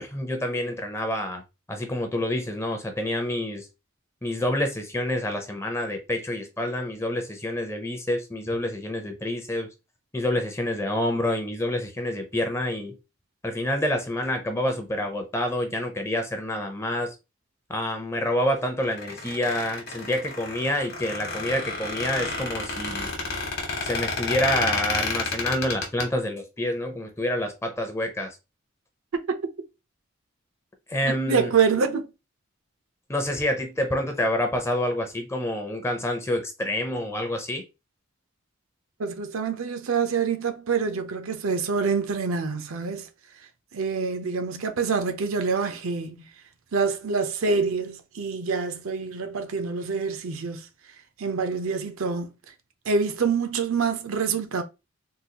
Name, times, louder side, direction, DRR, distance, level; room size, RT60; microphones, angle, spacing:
voice 1, 0.0-1.4 1.7-3.7 4.2-9.7 10.1-13.0 13.4-17.1 17.7-23.1 23.8-28.4 30.9-31.5 33.1-37.6, left 1 dB, 10° left, 0.5 m, -27 dB
Squeak, 18.8-26.0, left 3 dB, 45° left, 1.0 m, -30 dB
voice 2, 31.0-32.1 39.0-43.1 43.7-46.2 46.7-50.7 51.2-52.3 52.9-54.6, right 5 dB, 80° right, 0.6 m, -26 dB
3.8 x 2.3 x 2.8 m
head